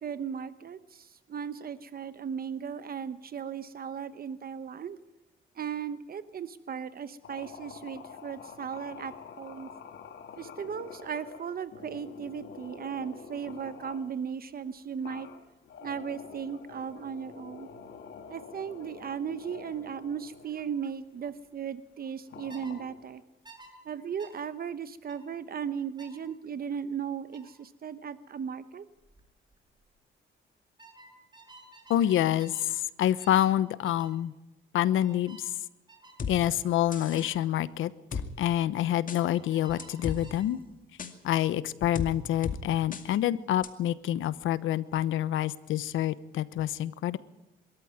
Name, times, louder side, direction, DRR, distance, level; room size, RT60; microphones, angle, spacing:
voice 1, 0.0-5.0 5.5-9.7 10.4-15.3 15.8-17.7 18.3-23.2 23.8-28.8, right 7 dB, 50° right, 13 dB, 1.0 m, -37 dB
sound 1, 7.2-14.1 15.0-20.6 21.1-21.4 22.3-23.2, left 6 dB, 65° left, 2.8 m, -47 dB
sound 2, 22.5-22.8 23.4-23.7 24.2-24.4 25.1-25.3 26.0-26.2 27.3-27.5 29.0-29.2 29.5-29.9 30.8-32.7 33.2-33.5 33.8-34.1 35.0-35.5 35.9-36.2 37.1-37.4 39.2-40.5, right 3 dB, 20° right, 5.5 m, -53 dB
voice 2, 31.9-34.3 34.7-35.6 36.3-40.6 41.2-47.2, left 12 dB, 80° left, 17 dB, 1.0 m, -27 dB
sound 3, 36.2-36.3 36.9-37.3 38.1-38.3 39.1-39.2 39.8-40.2 41.0-41.1 41.9-42.1 42.4-42.6 42.9-43.0 43.6-43.7, left 5 dB, 40° left, 2.3 m, -34 dB
22.5 x 14.0 x 9.6 m, 0.94 s
cardioid pair, 90°, 20 cm